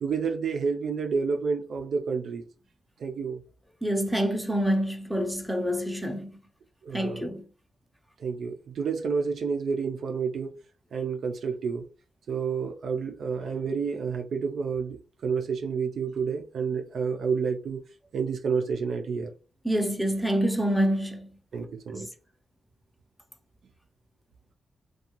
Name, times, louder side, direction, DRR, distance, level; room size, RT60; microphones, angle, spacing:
voice 1, 0.0-2.4 3.0-3.4 6.8-7.3 8.2-10.5 10.9-11.9 12.3-17.8 18.1-19.3 21.5-22.1, right 5 dB, 75° right, 0.4 m, -29 dB
voice 2, 3.8-6.3 6.9-7.4 19.6-21.3 21.9-22.1, equal, ahead, 0.6 m, -27 dB
2.5 x 2.2 x 2.9 m
cardioid pair, 85°, 0 cm